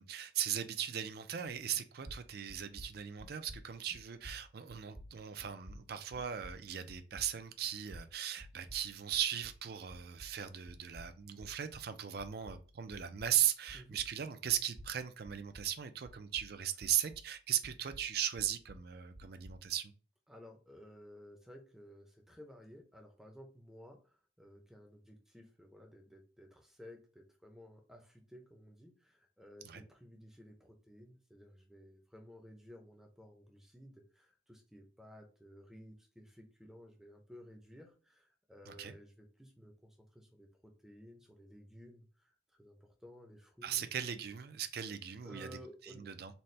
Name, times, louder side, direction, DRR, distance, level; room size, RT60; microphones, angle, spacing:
voice 1, 0.0-19.9 29.6-29.8 38.7-38.9 43.6-45.5 46.0-46.3, right 10 dB, 50° right, 0.4 m, -38 dB
sound 1, 1.8-9.7 9.9-14.2 14.5-17.3 17.6-19.7, equal, 85° right, 1.1 m, -53 dB
voice 2, 20.3-43.9 45.2-46.1, equal, ahead, 0.6 m, -55 dB
4.1 x 2.1 x 3.2 m
head